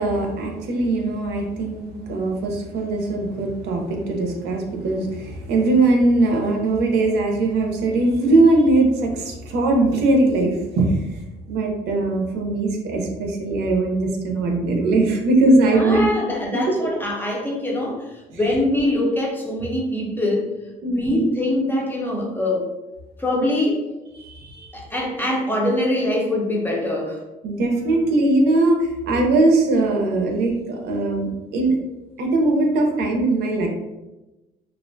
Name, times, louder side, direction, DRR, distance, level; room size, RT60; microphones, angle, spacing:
voice 1, 0.0-11.0 11.5-16.1 20.8-21.3 24.2-24.7 27.4-28.8 29.1-31.8 32.2-33.7, right 2 dB, 75° right, 1 dB, 0.5 m, -20 dB
voice 2, 15.7-20.5 20.8-22.7 23.2-23.8 24.7-27.2, left 1 dB, 10° left, -2 dB, 0.6 m, -23 dB
2.4 x 2.1 x 2.5 m, 1.0 s
cardioid pair, 110°, 17 cm